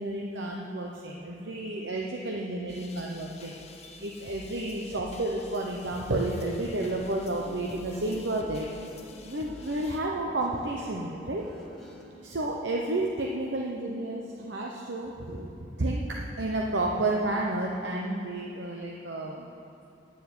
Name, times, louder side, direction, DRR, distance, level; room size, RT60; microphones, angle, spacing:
voice 1, 0.0-8.7 9.2-11.5 12.2-19.5, right 2 dB, 85° right, -1 dB, 0.9 m, -31 dB
sound 1, 2.7-10.0, left 3 dB, 35° left, 0.7 m, -48 dB
Guitar, 7.4-12.6, equal, ahead, 1.8 m, -50 dB
10.0 x 7.0 x 9.1 m, 2.8 s
head